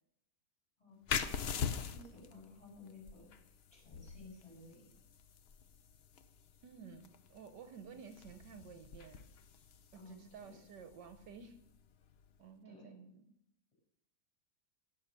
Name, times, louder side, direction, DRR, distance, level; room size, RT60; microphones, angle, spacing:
voice 1, 0.8-4.9 9.9-10.6 12.6-12.9, left 3 dB, 15° left, -2 dB, 7.1 m, -56 dB
sound 1, 1.1-12.4, left 7 dB, 75° left, 0.5 m, -44 dB
voice 2, 6.6-9.2 9.9-11.6 12.4-13.2, right 6 dB, 70° right, 8 dB, 1.5 m, -53 dB
17.5 x 6.8 x 6.7 m, 0.79 s
omnidirectional pair, 2.0 m